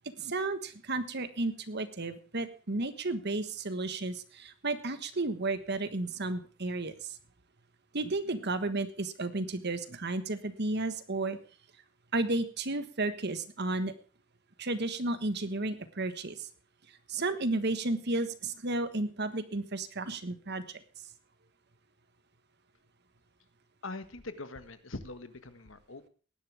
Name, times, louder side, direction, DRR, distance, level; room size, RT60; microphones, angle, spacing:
voice 1, 0.2-7.2 7.9-11.4 12.1-13.9 14.6-16.5 17.1-20.8, right 2 dB, 55° right, 11 dB, 1.4 m, -33 dB
voice 2, 23.8-26.1, left 2 dB, 70° left, 10 dB, 1.5 m, -42 dB
19.0 x 11.0 x 3.4 m, 0.37 s
head